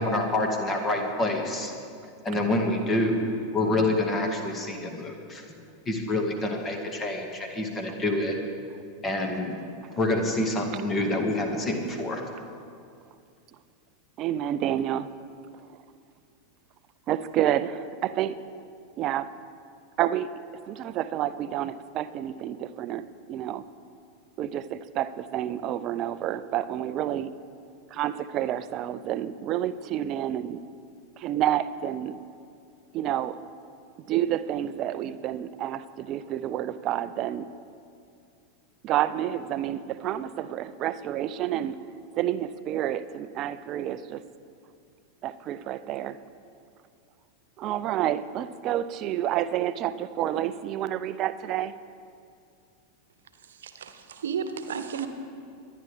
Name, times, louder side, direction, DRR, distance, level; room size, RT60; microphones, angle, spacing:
voice 1, 0.0-1.7 2.2-3.3 3.5-5.4 5.9-8.3 9.0-9.6 9.9-12.2, left 1 dB, 25° left, 3 dB, 2.0 m, -27 dB
voice 2, 14.2-15.1 15.7-15.8 17.1-18.4 19.0-19.3 20.0-20.3 20.7-23.6 24.4-27.3 27.9-30.6 31.2-32.2 32.9-33.4 34.1-37.5 38.8-41.8 42.2-44.2 45.2-46.2 47.6-51.7, right 11 dB, 40° right, 13 dB, 0.5 m, -29 dB
voice 3, 53.5-55.1, right 7 dB, 65° right, 8 dB, 1.1 m, -33 dB
23.5 x 10.5 x 3.5 m, 2.4 s
figure-of-eight pair, 90°, 0 cm